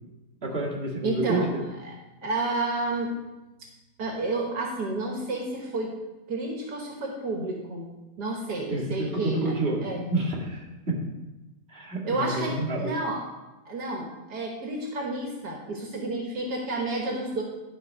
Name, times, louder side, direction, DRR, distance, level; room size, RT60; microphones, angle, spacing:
voice 1, 0.4-1.4 8.7-9.8 10.1-11.0 11.7-12.9, right 2 dB, 35° right, -6 dB, 2.3 m, -29 dB
voice 2, 1.0-1.5 1.8-1.9 2.2-3.2 3.6-3.7 4.0-5.9 6.3-7.9 8.2-9.5 9.8-10.1 12.1-13.2 13.7-17.4, right 2 dB, 75° right, 0 dB, 1.8 m, -30 dB
12.0 x 4.2 x 5.3 m, 1.1 s
omnidirectional pair, 1.8 m